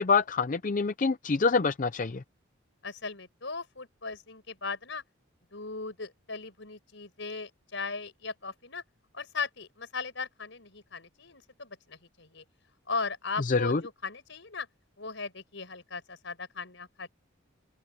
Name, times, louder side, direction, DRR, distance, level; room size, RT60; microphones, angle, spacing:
voice 1, 0.0-2.2 13.5-13.8, left 4 dB, 40° left, 0.5 m, -26 dB
voice 2, 2.8-5.0 5.5-8.8 9.1-12.4 12.9-14.7 15.0-17.1, left 4 dB, 65° left, 5.8 m, -38 dB
open air
head